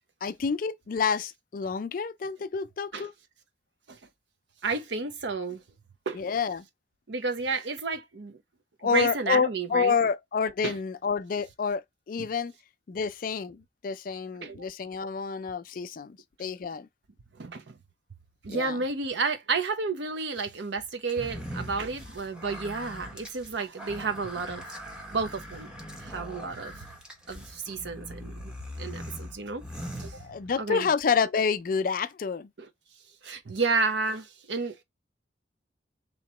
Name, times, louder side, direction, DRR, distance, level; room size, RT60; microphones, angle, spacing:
voice 1, 0.2-3.1 6.1-6.7 8.8-11.8 12.1-12.5 12.9-16.9 18.5-18.8 30.2-32.5, left 5 dB, 50° left, 0.4 m, -28 dB
voice 2, 4.6-5.6 6.1-6.2 7.1-8.4 8.9-9.9 10.6-10.7 12.2-12.3 14.4-14.6 17.4-17.8 18.4-24.7 25.1-25.7 26.0-26.7 27.3-28.5 28.8-29.6 30.0-30.2 30.6-30.9 32.6-32.7 33.2-34.8, right 4 dB, 80° right, 0.8 m, -31 dB
sound 1, 21.1-30.8, equal, 5° right, 0.9 m, -41 dB
3.1 x 2.9 x 4.2 m
head